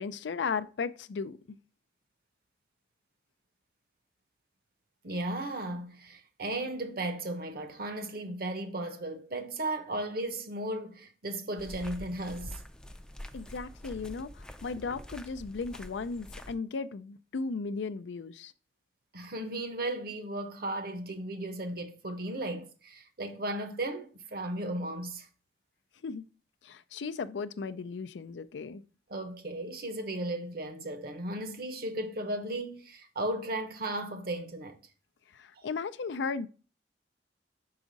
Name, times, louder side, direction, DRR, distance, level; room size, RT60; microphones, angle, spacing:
voice 1, 0.0-1.6 13.3-18.5 26.0-26.2 26.6-28.8 35.3-36.5, left 4 dB, 90° left, 0.4 m, -36 dB
voice 2, 5.0-12.6 19.1-25.3 29.1-34.8, right 1 dB, 60° right, 0.9 m, -35 dB
sound 1, 11.6-16.5, left 1 dB, 5° left, 0.4 m, -45 dB
6.1 x 4.8 x 4.0 m
head